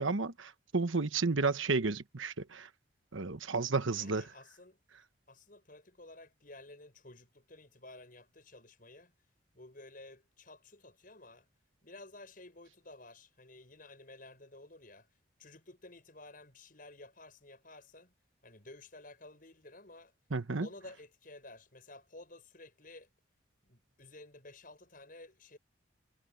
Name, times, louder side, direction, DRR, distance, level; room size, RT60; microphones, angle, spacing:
voice 1, 0.0-2.7 3.1-4.3 20.3-20.7, right 3 dB, 75° right, 1.2 m, -32 dB
voice 2, 3.9-4.8 5.3-9.1 9.5-11.5 11.8-15.1 15.4-18.1 18.4-20.1 20.6-23.1 23.6-25.6, left 2 dB, 45° left, 7.3 m, -53 dB
head